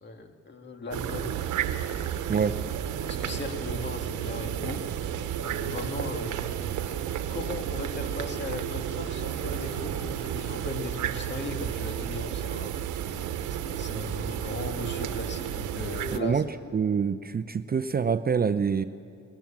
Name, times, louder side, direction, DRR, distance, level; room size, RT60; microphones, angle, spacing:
voice 1, 0.0-1.4 3.1-4.9 5.4-6.5 7.3-12.7 13.6-16.8, left 2 dB, 35° left, 4 dB, 2.2 m, -37 dB
sound 1, 0.9-16.2, right 10 dB, 80° right, 1.1 m, -32 dB
sound 2, 1.4-10.7, left 1 dB, 65° left, 5.5 m, -53 dB
voice 2, 16.1-16.5 16.7-18.8, right 6 dB, 30° right, 11 dB, 0.7 m, -25 dB
22.5 x 20.0 x 7.4 m, 2.3 s
cardioid pair, 90°, 30 cm